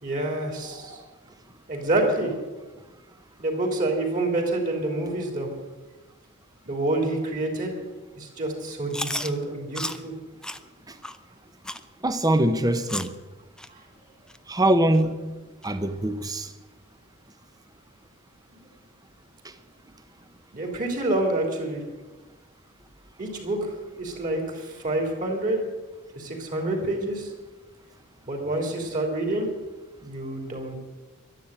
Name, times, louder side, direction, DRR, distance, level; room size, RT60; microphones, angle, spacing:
voice 1, 0.0-1.0 1.7-2.3 3.4-5.5 6.6-7.8 8.1-10.1 13.7-13.8 20.5-21.8 23.2-23.6 24.0-25.6 26.1-27.3 28.3-29.5 30.0-30.8, right 2 dB, 40° right, 2 dB, 3.2 m, -27 dB
Chewing mastication, 8.9-9.3 9.7-10.0 10.4-10.6 11.0-11.2 11.6-11.8 12.3-12.4 12.9-13.1 13.6-13.7 14.3-14.4 14.9-15.0 15.6-15.7, left 1 dB, 5° left, 0.6 m, -32 dB
voice 2, 12.0-13.1 14.5-15.2 15.6-16.5, right 1 dB, 20° right, 10 dB, 1.0 m, -23 dB
11.5 x 11.5 x 8.9 m, 1.2 s
head